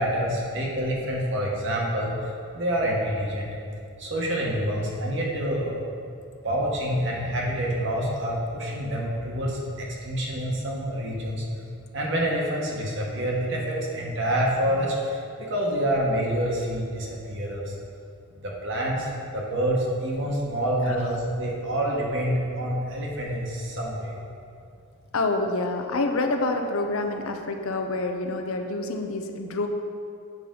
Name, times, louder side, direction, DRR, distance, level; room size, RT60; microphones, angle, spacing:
voice 1, 0.0-2.1 2.5-3.5 4.0-5.7 6.4-11.4 11.9-17.7 18.3-24.1, equal, 55° right, -3 dB, 1.3 m, -27 dB
voice 2, 25.1-29.7, left 2 dB, 70° left, 5 dB, 0.6 m, -27 dB
7.9 x 5.8 x 3.8 m, 2.5 s
head